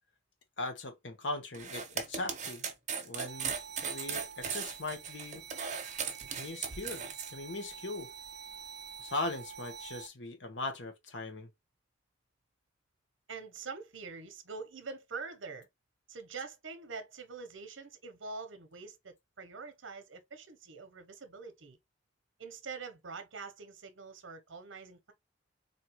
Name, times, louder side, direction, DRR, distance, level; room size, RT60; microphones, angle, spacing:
voice 1, 0.6-2.7 3.0-3.6 3.8-5.4 6.4-7.0 7.3-8.1 9.0-11.5, left 2 dB, 70° left, 1.1 m, -39 dB
sound 1, 1.5-7.3, right 6 dB, 40° right, 0.9 m, -37 dB
sound 2, 3.3-10.1, right 7 dB, 60° right, 0.4 m, -48 dB
voice 2, 13.3-15.7 16.1-21.8 22.4-25.1, right 4 dB, 80° right, 0.9 m, -45 dB
4.2 x 2.8 x 3.0 m
head